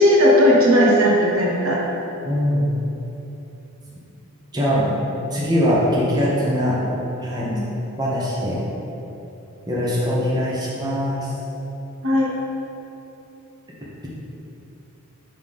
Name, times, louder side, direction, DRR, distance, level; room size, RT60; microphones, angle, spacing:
voice 1, 0.0-1.8 7.4-7.7 12.0-12.3, equal, 70° right, -3 dB, 1.1 m, -16 dB
voice 2, 2.2-2.7 4.5-4.9 5.3-6.8 7.2-7.5 8.0-8.6 9.7-11.3, equal, 20° right, -7 dB, 0.9 m, -21 dB
5.5 x 3.7 x 5.8 m, 3.0 s
head